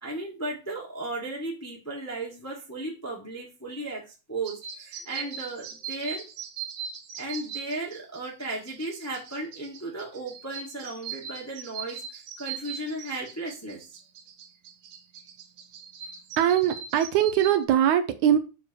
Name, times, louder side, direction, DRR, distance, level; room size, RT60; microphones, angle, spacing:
voice 1, 0.0-4.0 4.3-6.2 7.2-13.8, right 2 dB, 10° left, -3 dB, 1.2 m, -35 dB
sound 1, 4.4-17.6, right 7 dB, 65° right, 1.5 m, -40 dB
voice 2, 16.4-18.4, right 10 dB, 80° right, 8 dB, 2.0 m, -22 dB
7.2 x 6.7 x 3.0 m, 0.32 s
omnidirectional pair, 3.5 m